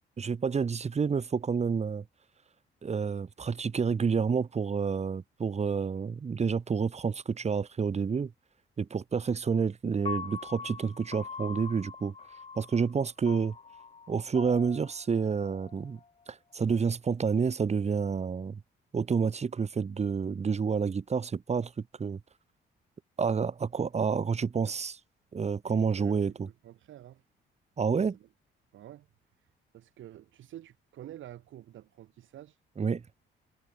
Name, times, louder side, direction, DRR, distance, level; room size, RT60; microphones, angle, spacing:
voice 1, 0.2-2.0 2.8-8.3 8.8-12.1 12.6-13.6 14.1-16.0 16.3-18.6 18.9-21.7 22.0-22.2 23.2-25.0 25.3-26.5 27.8-28.2 32.8-33.0, right 5 dB, 35° right, 1.4 m, -29 dB
Piano, 10.1-16.2, left 5 dB, 30° left, 1.5 m, -43 dB
voice 2, 25.6-27.2 28.1-28.3 28.7-29.1 29.7-32.6, right 12 dB, 75° right, 3.5 m, -49 dB
cardioid pair, 90°, 20 cm